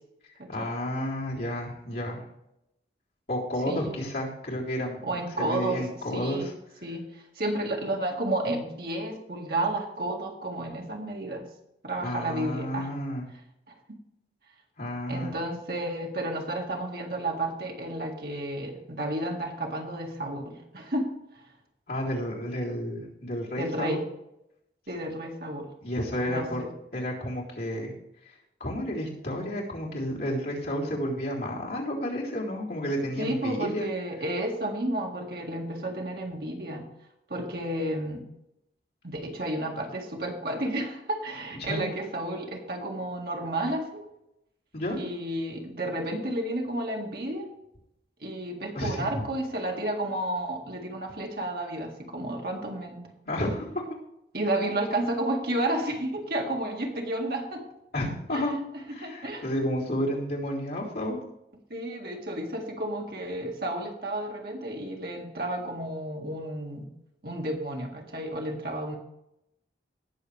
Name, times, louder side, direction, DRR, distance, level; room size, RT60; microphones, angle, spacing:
voice 1, 0.5-2.2 3.3-5.0 5.4-6.5 12.0-13.2 14.8-15.3 21.9-24.0 25.8-26.6 26.9-27.9 28.6-33.9 41.6-41.8 44.7-45.0 48.7-49.3 53.3-53.8 57.9-58.5 58.9-61.2, equal, 60° left, -5 dB, 3.7 m, -31 dB
voice 2, 3.7-4.0 5.0-5.8 6.1-6.5 6.8-11.4 11.8-12.9 13.7-13.8 15.1-21.5 23.6-24.0 24.9-25.7 26.3-26.7 33.2-36.8 37.3-38.2 39.0-44.0 45.0-47.5 48.2-53.0 54.3-57.6 58.3-58.4 59.0-59.8 61.7-66.9 67.2-69.0, right 1 dB, 55° right, 1 dB, 1.9 m, -32 dB
19.0 x 6.8 x 3.4 m, 0.83 s
head